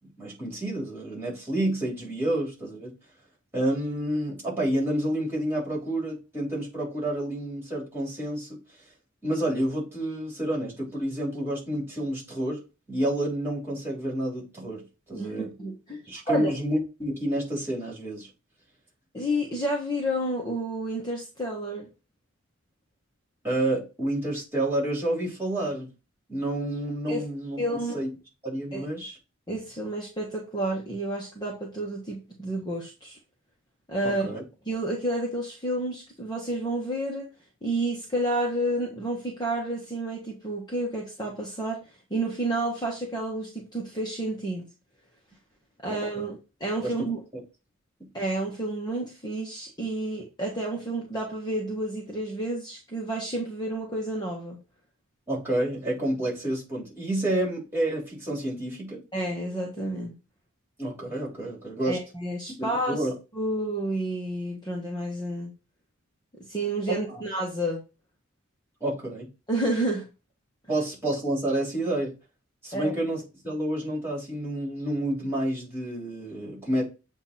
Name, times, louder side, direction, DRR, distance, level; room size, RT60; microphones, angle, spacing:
voice 1, 0.2-2.9 3.5-8.5 9.2-12.6 12.9-14.8 15.1-15.5 16.1-18.3 23.4-25.9 26.3-27.6 27.9-28.1 28.4-29.2 34.2-34.4 45.8-46.3 46.8-47.1 55.3-59.0 60.8-62.0 62.6-63.1 66.9-67.2 68.8-69.3 70.7-72.1 72.6-73.2 73.4-76.8, right 1 dB, 10° right, 3.1 m, -29 dB
voice 2, 15.1-16.5 19.1-21.9 27.1-27.2 27.6-28.0 28.7-28.8 29.5-33.2 33.9-34.3 34.6-37.3 37.6-41.8 42.1-44.7 45.8-47.2 48.1-54.6 59.1-60.1 61.9-63.1 63.3-65.5 66.5-67.8 69.5-70.0 72.7-72.9, right 1 dB, 20° left, 1.3 m, -30 dB
8.1 x 2.7 x 4.2 m
head